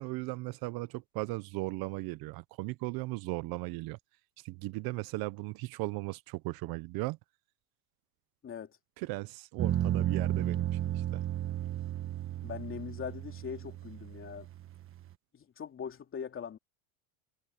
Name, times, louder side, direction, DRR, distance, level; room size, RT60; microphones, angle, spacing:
voice 1, 0.0-4.0 4.4-7.2 9.0-11.2, right 22 dB, 55° right, 1.0 m, -37 dB
voice 2, 8.4-8.8 12.4-14.5 15.3-16.6, left 7 dB, 30° left, 3.3 m, -41 dB
sound 1, 9.6-15.1, right 11 dB, 30° right, 1.3 m, -34 dB
supercardioid pair, 125°, 43 cm